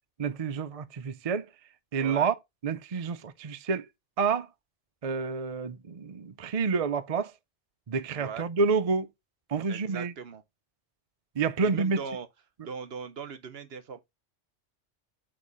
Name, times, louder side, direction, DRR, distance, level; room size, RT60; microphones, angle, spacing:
voice 1, 0.2-1.5 1.9-2.3 2.6-3.9 4.2-4.5 5.0-7.3 7.9-9.1 9.5-10.1 11.4-12.0, right 5 dB, 40° right, 0.5 m, -28 dB
voice 2, 2.0-2.3 8.1-8.5 9.7-10.4 11.6-12.3 12.6-14.0, right 6 dB, 60° right, 1.0 m, -39 dB
8.4 x 3.2 x 4.9 m
omnidirectional pair, 1.2 m